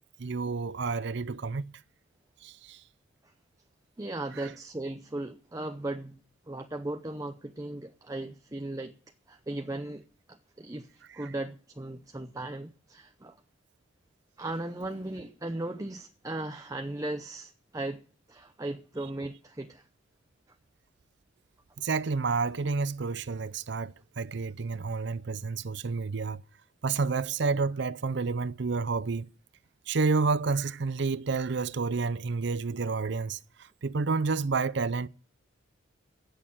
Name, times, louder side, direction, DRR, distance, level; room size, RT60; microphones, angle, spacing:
voice 1, 0.2-1.6 2.4-2.8 11.2-11.3 21.8-26.4 26.8-29.3 29.9-35.1, right 4 dB, 60° right, 0.6 m, -30 dB
voice 2, 4.0-6.2 6.5-8.9 9.3-10.0 10.3-13.4 14.4-18.0 18.3-19.8, right 2 dB, 15° right, 0.7 m, -37 dB
16.0 x 6.6 x 9.1 m
head